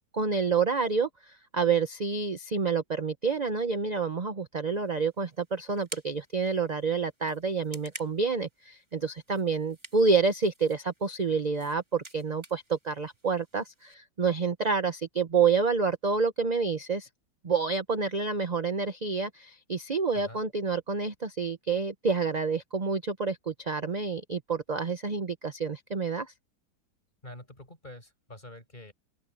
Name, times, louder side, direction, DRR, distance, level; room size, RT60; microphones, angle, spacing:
voice 1, 0.1-1.1 1.5-17.1 17.4-26.3, right 5 dB, 30° right, 0.8 m, -28 dB
sound 1, 4.7-13.9, right 2 dB, 15° right, 2.4 m, -51 dB
voice 2, 27.2-28.9, left 1 dB, 25° left, 5.8 m, -46 dB
open air
omnidirectional pair, 2.0 m